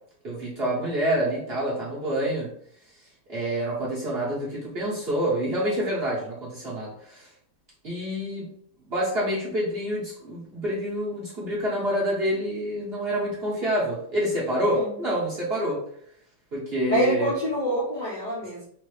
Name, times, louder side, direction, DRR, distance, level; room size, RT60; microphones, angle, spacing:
voice 1, 0.2-2.5 3.3-7.3 7.8-8.5 8.9-15.8 16.5-17.3, equal, 35° right, -7 dB, 1.4 m, -27 dB
voice 2, 16.9-18.7, right 1 dB, 55° left, -6 dB, 0.5 m, -26 dB
4.0 x 2.9 x 3.2 m, 0.65 s
omnidirectional pair, 2.2 m